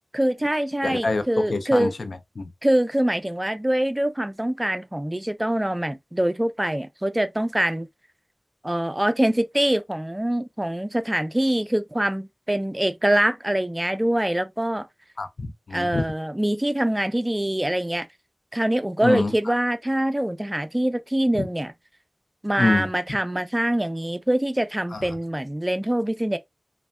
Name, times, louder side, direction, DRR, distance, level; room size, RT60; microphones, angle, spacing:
voice 1, 0.1-1.9 2.6-7.9 8.6-14.9 15.7-18.1 18.5-21.7 22.4-26.4, right 1 dB, 20° right, 0.4 m, -24 dB
voice 2, 0.8-2.5 15.2-16.0 19.0-19.5 21.4-21.5 22.6-22.9 24.9-25.1, left 3 dB, 85° left, 0.4 m, -26 dB
3.1 x 2.1 x 2.2 m
wide cardioid pair, 55°, 0 cm